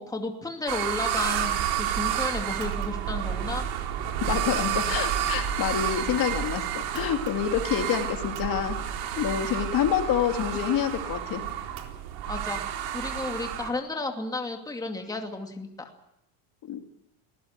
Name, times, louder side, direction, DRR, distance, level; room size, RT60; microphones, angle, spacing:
voice 1, 0.0-3.7 12.3-12.6 12.9-15.9, left 3 dB, 10° left, 3 dB, 2.5 m, -33 dB
sound 1, 0.7-13.7, right 10 dB, 70° right, 4.0 m, -30 dB
voice 2, 4.2-8.8 9.2-11.4 16.7-16.8, left 9 dB, 45° left, 5 dB, 2.6 m, -27 dB
22.0 x 19.0 x 8.2 m, 0.78 s
cardioid pair, 140°, 47 cm